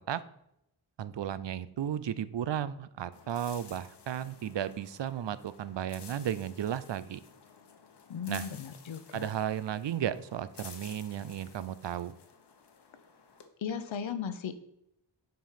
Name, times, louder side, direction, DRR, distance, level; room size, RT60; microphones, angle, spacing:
voice 1, 1.0-7.2 8.3-8.5 9.1-12.1, right 10 dB, 70° right, 15 dB, 0.6 m, -34 dB
sound 1, 3.1-13.5, left 6 dB, 60° left, 1.0 m, -53 dB
voice 2, 8.1-9.3 13.6-14.6, left 6 dB, 80° left, 11 dB, 0.8 m, -36 dB
7.8 x 5.2 x 5.6 m, 0.80 s
wide cardioid pair, 125°, 45 cm